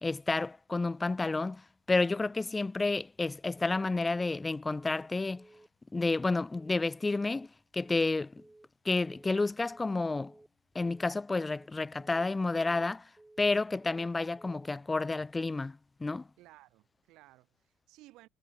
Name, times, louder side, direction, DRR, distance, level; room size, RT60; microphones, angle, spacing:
voice 1, 0.0-5.5 5.9-7.5 7.7-8.4 8.8-10.3 10.7-13.1 13.4-16.3, left 3 dB, 15° left, 0.4 m, -30 dB
Telephone, 4.8-5.1 5.4-5.7 6.0-6.3 6.6-6.9 7.2-7.5 7.8-8.1 8.4-8.7 9.0-9.3 9.6-9.9 10.2-10.5 10.8-11.1 11.4-11.7 12.0-12.3 12.6-12.9 13.2-13.5 13.8-14.1 14.4-14.7, right 2 dB, 10° right, 1.9 m, -57 dB
voice 2, 16.4-18.3, right 18 dB, 65° right, 3.0 m, -58 dB
supercardioid pair, 110°, 0 cm